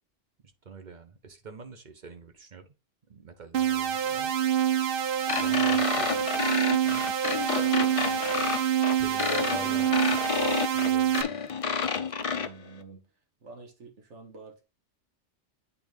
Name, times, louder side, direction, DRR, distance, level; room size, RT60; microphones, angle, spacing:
voice 1, 0.4-2.7 3.1-4.3 5.4-6.3 6.8-7.0 8.4-8.5 8.8-11.4, right 4 dB, 40° right, 1.1 m, -45 dB
sound 1, 3.5-11.2, right 10 dB, 60° right, 0.7 m, -26 dB
sound 2, 5.3-12.5, left 6 dB, 40° left, 0.5 m, -30 dB
voice 2, 12.3-13.1 13.4-14.6, right 4 dB, 80° right, 1.8 m, -48 dB
8.5 x 3.8 x 3.4 m
omnidirectional pair, 1.2 m